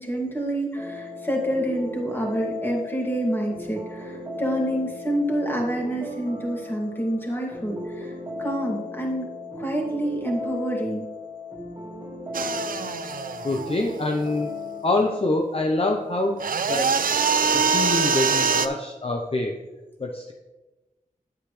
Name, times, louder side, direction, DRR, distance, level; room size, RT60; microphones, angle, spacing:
voice 1, 0.0-8.1 8.4-9.3 9.6-11.1, right 1 dB, 15° left, -1 dB, 2.3 m, -27 dB
sound 1, 0.8-14.8, left 2 dB, 20° right, 2.3 m, -36 dB
sound 2, 12.3-14.4 16.4-18.7, right 5 dB, 75° right, 0.5 m, -24 dB
voice 2, 13.4-14.5 14.8-17.0 17.5-19.5 20.0-20.3, left 2 dB, 40° left, 1 dB, 0.8 m, -25 dB
8.8 x 8.2 x 3.3 m, 1.1 s
wide cardioid pair, 60°, 15 cm